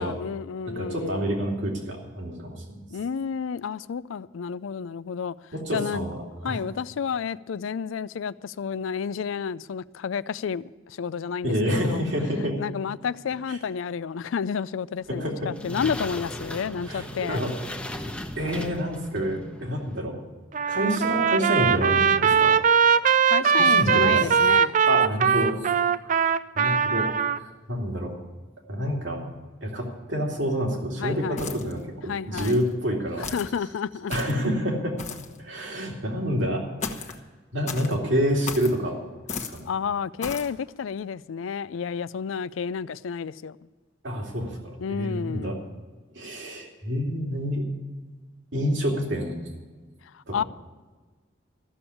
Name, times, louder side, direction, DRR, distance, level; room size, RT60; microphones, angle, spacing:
voice 1, 0.0-1.3 2.9-6.1 6.4-12.0 12.6-17.4 23.3-24.8 31.0-31.4 32.1-32.5 33.2-34.1 39.6-43.6 44.8-45.6 50.1-50.4, left 6 dB, 80° left, 0.4 m, -31 dB
voice 2, 0.8-2.8 5.5-6.2 6.4-6.6 11.4-12.6 13.5-13.6 15.1-15.5 16.9-17.5 18.4-20.1 20.7-22.5 23.4-24.5 24.9-25.7 26.0-26.3 26.5-27.1 27.4-28.1 28.7-29.2 29.6-33.3 34.1-35.0 35.4-36.6 37.0-37.1 37.5-39.0 39.4-39.7 44.0-45.5 46.1-47.7 48.5-49.4 50.3-50.4, equal, 65° right, 2.7 m, -28 dB
sound 1, 15.0-20.0, left 1 dB, 5° left, 0.9 m, -37 dB
Trumpet, 20.5-27.4, right 7 dB, 40° right, 0.4 m, -21 dB
sound 2, 31.4-31.8 32.4-32.7 33.2-33.6 34.1-34.4 35.0-35.4 36.8-37.2 37.7-38.0 38.5-38.8 39.3-39.6 40.2-40.5, left 5 dB, 35° left, 1.1 m, -35 dB
14.0 x 7.0 x 9.8 m
head